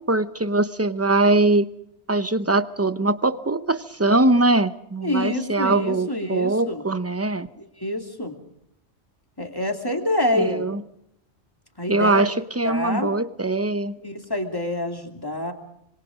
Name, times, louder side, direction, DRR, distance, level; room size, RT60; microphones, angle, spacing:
voice 1, 0.1-1.7 2.1-7.5 10.4-10.8 11.9-13.9, right 2 dB, 15° right, 13 dB, 0.7 m, -22 dB
voice 2, 5.0-6.8 7.6-8.3 9.4-10.6 11.8-12.3 12.6-13.1 14.0-15.5, left 1 dB, 20° left, 4 dB, 2.7 m, -26 dB
26.0 x 22.5 x 5.1 m, 0.74 s
omnidirectional pair, 1.2 m